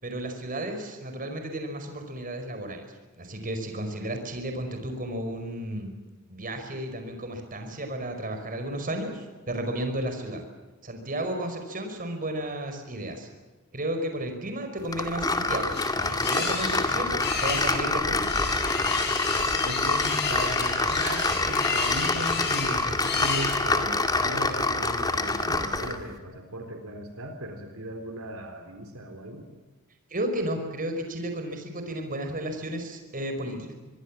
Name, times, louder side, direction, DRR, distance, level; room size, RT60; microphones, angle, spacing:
voice 1, 0.0-2.8 3.2-5.9 6.3-10.4 10.8-13.3 13.7-18.2 30.1-33.7, right 1 dB, 40° right, 6 dB, 5.1 m, -33 dB
sound 1, 14.9-26.0, left 3 dB, 20° left, 2.2 m, -27 dB
sound 2, 15.1-24.0, left 5 dB, 50° left, 6.9 m, -32 dB
voice 2, 19.6-29.5, right 1 dB, 75° right, 5 dB, 3.9 m, -36 dB
25.0 x 22.5 x 7.5 m, 1.3 s
head